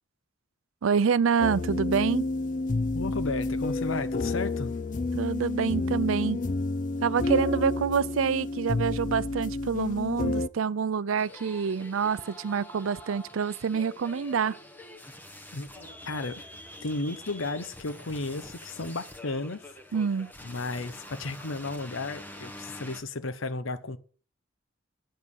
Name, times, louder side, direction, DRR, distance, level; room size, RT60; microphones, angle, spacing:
voice 1, 0.8-2.3 5.1-6.4 7.0-14.6 19.9-20.3, right 6 dB, 85° right, 0.5 m, -27 dB
sound 1, 1.4-10.5, left 3 dB, 40° left, 0.5 m, -30 dB
voice 2, 2.9-4.7 15.5-16.5 16.8-19.6 20.4-24.0, left 2 dB, 80° left, 0.9 m, -34 dB
sound 2, 11.2-23.0, left 1 dB, 10° left, 1.1 m, -46 dB
9.1 x 7.5 x 6.3 m
head